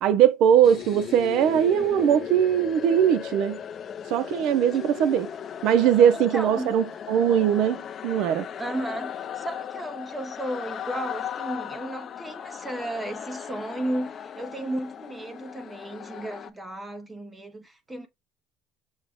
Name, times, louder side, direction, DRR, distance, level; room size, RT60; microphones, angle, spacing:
voice 1, 0.0-3.6 4.1-5.3 5.6-7.8 8.0-8.4, right 9 dB, 65° right, 0.4 m, -20 dB
sound 1, 0.6-16.5, left 9 dB, 40° left, 0.4 m, -37 dB
voice 2, 6.1-6.7 8.6-18.1, right 1 dB, 15° right, 0.6 m, -34 dB
6.3 x 2.1 x 3.4 m
cardioid pair, 130°, 0 cm